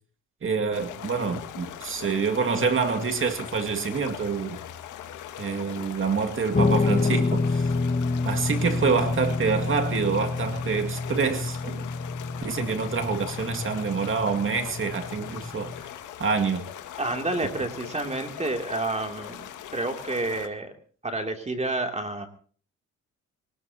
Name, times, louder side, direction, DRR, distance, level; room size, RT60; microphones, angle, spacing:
voice 1, 0.4-4.6 5.4-7.7 8.2-11.9 12.4-15.7 16.2-16.6, right 5 dB, 40° right, 2.3 m, -27 dB
sound 1, 0.7-20.5, left 10 dB, 85° left, 2.1 m, -40 dB
Guitar, 6.5-15.8, left 3 dB, 25° left, 1.5 m, -28 dB
voice 2, 17.0-20.7 21.0-22.3, right 2 dB, 20° right, 3.0 m, -29 dB
24.0 x 19.0 x 2.9 m
cardioid pair, 90°, 30 cm